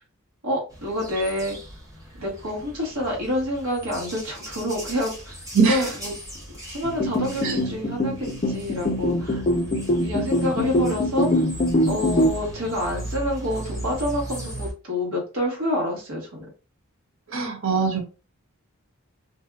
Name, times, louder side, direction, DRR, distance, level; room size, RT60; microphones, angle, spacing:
voice 1, 0.4-1.6 2.1-5.3 5.7-6.1 6.7-9.4 10.0-11.4 11.9-16.4, left 1 dB, 75° right, 1.3 m, -28 dB
sound 1, 0.7-14.7, right 1 dB, 15° right, 0.7 m, -38 dB
voice 2, 5.5-6.0 7.4-7.6 17.3-18.0, right 5 dB, 60° right, 0.7 m, -22 dB
sound 2, 6.8-12.3, left 1 dB, 35° left, 0.4 m, -23 dB
2.6 x 2.3 x 2.2 m
head